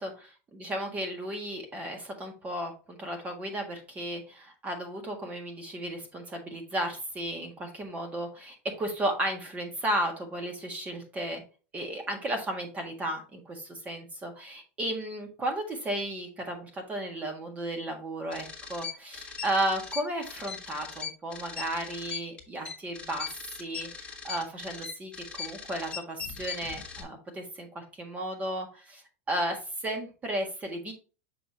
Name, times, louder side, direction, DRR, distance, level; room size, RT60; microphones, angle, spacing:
voice 1, 0.0-11.4 11.7-23.3 23.6-29.0 29.3-30.9, right 1 dB, 20° right, 3 dB, 1.7 m, -34 dB
sound 1, 18.3-27.0, left 6 dB, 15° left, 1.4 m, -40 dB
6.8 x 5.1 x 2.8 m, 0.33 s
supercardioid pair, 140°, 8 cm